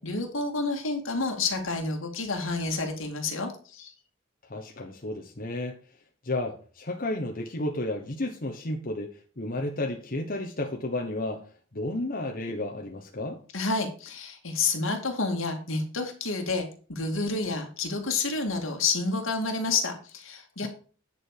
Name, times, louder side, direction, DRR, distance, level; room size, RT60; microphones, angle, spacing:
voice 1, 0.0-3.9 13.5-20.7, left 3 dB, 75° left, 2.3 m, -29 dB
voice 2, 4.5-5.8 6.2-11.5 11.7-13.4 20.6-20.7, left 2 dB, 45° left, 1.2 m, -32 dB
9.8 x 4.8 x 6.6 m
head